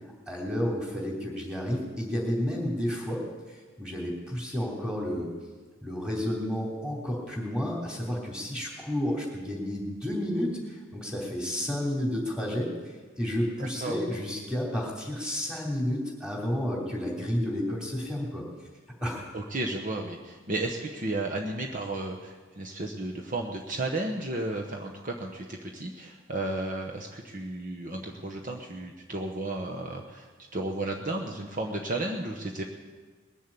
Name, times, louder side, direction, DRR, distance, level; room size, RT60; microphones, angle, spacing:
voice 1, 0.3-3.2 3.5-5.3 5.8-18.4 19.0-19.3, equal, 5° right, -1 dB, 3.2 m, -31 dB
voice 2, 13.6-14.0 19.3-32.6, right 2 dB, 40° right, 1 dB, 1.1 m, -33 dB
20.5 x 7.3 x 8.4 m, 1.4 s
head